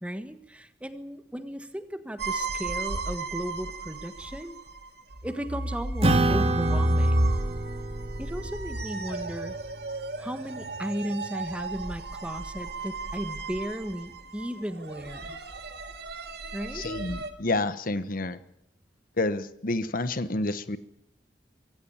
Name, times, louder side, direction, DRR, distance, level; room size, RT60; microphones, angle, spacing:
voice 1, 0.0-4.5 5.2-7.3 8.2-9.5 10.2-15.4 16.5-16.9, equal, 5° right, 10 dB, 1.5 m, -35 dB
sound 1, 2.2-17.3, right 1 dB, 65° right, 2.2 m, -32 dB
Acoustic guitar / Strum, 6.0-10.8, right 2 dB, 35° right, 2.3 m, -29 dB
voice 2, 16.7-18.4 19.2-20.8, left 2 dB, 55° left, 13 dB, 1.2 m, -29 dB
24.0 x 16.0 x 8.7 m, 0.77 s
head